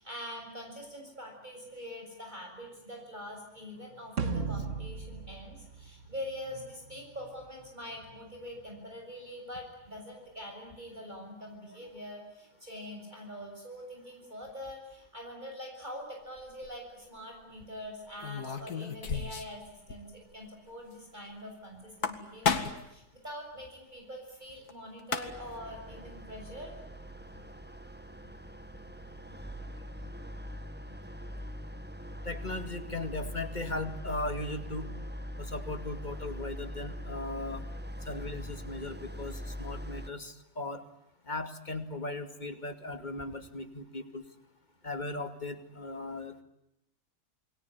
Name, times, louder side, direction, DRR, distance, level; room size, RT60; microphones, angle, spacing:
voice 1, 0.0-26.7, equal, 30° right, 1 dB, 7.4 m, -44 dB
sound 1, 4.2-6.6, right 4 dB, 50° right, 1.9 m, -35 dB
sound 2, 16.4-16.7 18.2-19.6 19.9-20.0 20.3-20.4 21.8-22.9 24.7-24.8 25.0-25.6, left 6 dB, 75° left, 2.6 m, -32 dB
sound 3, 25.3-40.1, equal, 5° right, 1.4 m, -42 dB
voice 2, 32.2-34.9 35.4-37.6 38.1-40.8 41.3-44.2 44.8-46.4, left 2 dB, 30° left, 8 dB, 2.4 m, -38 dB
29.0 x 21.5 x 9.6 m, 0.85 s
omnidirectional pair, 1.6 m